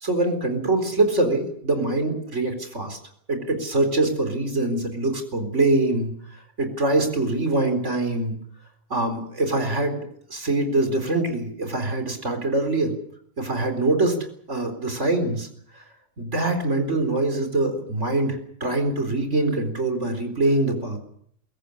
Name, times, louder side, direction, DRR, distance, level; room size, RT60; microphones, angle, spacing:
voice 1, 0.0-3.0 3.3-6.1 6.6-8.4 8.9-12.9 13.4-14.2 14.5-15.5 15.8-15.9 16.2-21.0, right 2 dB, 65° right, 7 dB, 4.5 m, -24 dB
23.0 x 17.0 x 8.4 m, 0.67 s
omnidirectional pair, 1.3 m